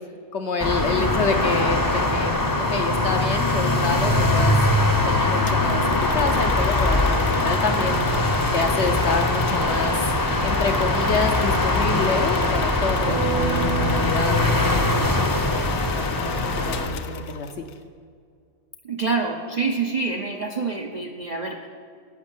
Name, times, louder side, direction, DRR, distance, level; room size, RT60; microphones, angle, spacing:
voice 1, 0.3-4.6 5.0-8.1 8.5-10.0 10.4-13.2 13.6-14.5 15.3-17.7, left 4 dB, 55° left, 5 dB, 0.8 m, -28 dB
sound 1, 0.6-16.9, left 2 dB, 15° left, 0.7 m, -22 dB
sound 2, 5.5-17.8, left 7 dB, 75° left, 1.2 m, -33 dB
sound 3, 13.1-16.0, right 2 dB, 75° right, 1.4 m, -29 dB
voice 2, 18.8-21.7, right 4 dB, 40° right, 3 dB, 0.6 m, -26 dB
11.0 x 6.4 x 9.0 m, 2.2 s
omnidirectional pair, 1.6 m